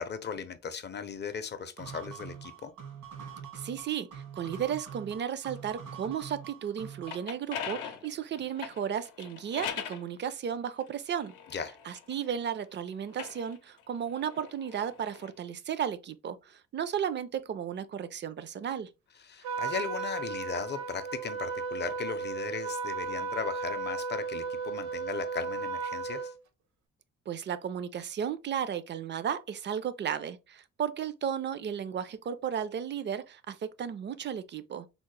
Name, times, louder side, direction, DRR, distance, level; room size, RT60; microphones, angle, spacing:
voice 1, 0.0-2.7 11.5-11.7 19.3-26.3, left 6 dB, 35° left, 0.5 m, -37 dB
sound 1, 1.8-7.3, right 7 dB, 85° right, 1.5 m, -44 dB
voice 2, 3.5-11.3 11.8-18.9 27.3-34.9, right 8 dB, 40° right, 0.4 m, -34 dB
sound 2, 6.8-10.0 10.8-12.5 13.0-15.3, left 8 dB, 85° left, 0.6 m, -41 dB
Trumpet, 19.4-26.3, right 4 dB, 70° right, 0.7 m, -35 dB
3.6 x 2.0 x 3.1 m
cardioid pair, 90°, 30 cm